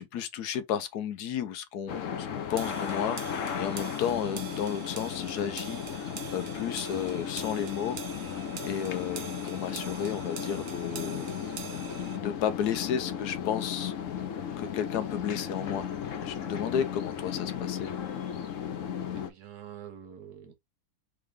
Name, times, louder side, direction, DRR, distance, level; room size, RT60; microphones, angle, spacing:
voice 1, 0.0-11.3 12.1-13.9 14.6-15.9 16.2-17.9, left 9 dB, 90° left, 1.2 m, -33 dB
sound 1, 1.9-19.3, left 8 dB, 60° left, 1.0 m, -35 dB
sound 2, 2.6-12.2, right 6 dB, 50° right, 0.9 m, -43 dB
voice 2, 19.1-20.5, right 9 dB, 85° right, 1.5 m, -47 dB
3.8 x 3.4 x 3.5 m
omnidirectional pair, 1.6 m